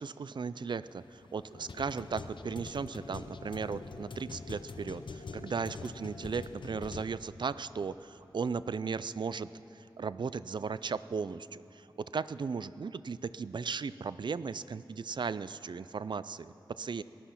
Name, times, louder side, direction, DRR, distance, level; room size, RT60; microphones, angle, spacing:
voice 1, 0.0-9.5 9.8-17.0, right 5 dB, 65° right, 16 dB, 0.4 m, -36 dB
sound 1, 0.8-7.0, left 4 dB, 70° left, 0.7 m, -44 dB
18.5 x 12.5 x 5.9 m, 2.8 s
wide cardioid pair, 95°, 9 cm